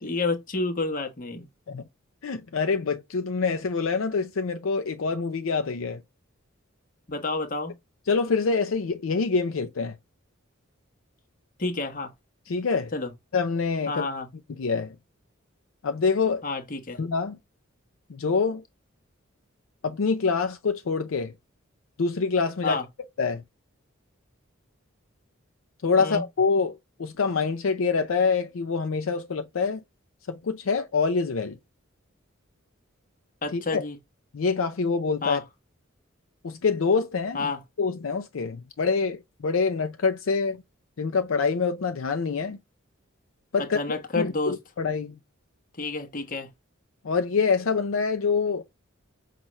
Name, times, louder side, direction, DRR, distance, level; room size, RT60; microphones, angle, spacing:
voice 1, 0.0-1.5 7.1-7.7 11.6-12.1 12.9-13.1 13.9-14.3 16.4-17.0 22.6-22.8 26.0-26.2 33.4-34.0 35.2-35.4 37.3-37.6 43.6-44.6 45.8-46.5, left 3 dB, 40° left, 1.0 m, -29 dB
voice 2, 2.2-6.0 8.1-9.9 12.5-12.9 13.3-14.1 14.6-14.9 15.8-16.5 17.0-17.4 18.1-18.6 19.8-21.3 22.0-22.8 23.2-23.4 25.8-29.8 30.3-31.6 33.5-33.8 34.3-35.4 36.4-37.5 37.8-40.6 41.0-42.6 43.5-43.8 44.2-45.2 47.0-48.6, left 4 dB, 75° left, 0.5 m, -25 dB
5.5 x 2.4 x 3.0 m
head